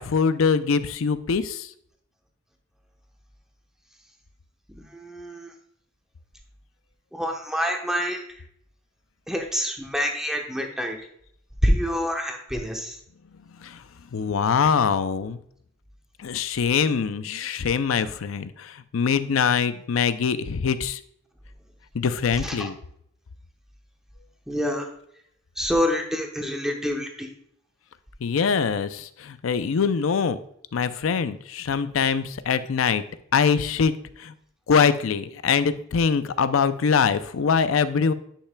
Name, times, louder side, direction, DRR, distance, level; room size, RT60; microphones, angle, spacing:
voice 1, 0.0-1.7 13.6-13.8 14.1-15.4 16.2-21.0 21.9-22.8 28.2-30.4 30.7-33.0 33.3-33.9 34.2-34.3 34.7-38.1, left 6 dB, 85° left, 13 dB, 0.5 m, -23 dB
voice 2, 4.7-5.5 7.1-8.2 9.3-11.0 11.6-13.0 22.4-22.7 24.5-24.9 25.6-27.3, equal, 5° right, 2 dB, 0.9 m, -26 dB
10.0 x 5.6 x 2.2 m, 0.68 s
head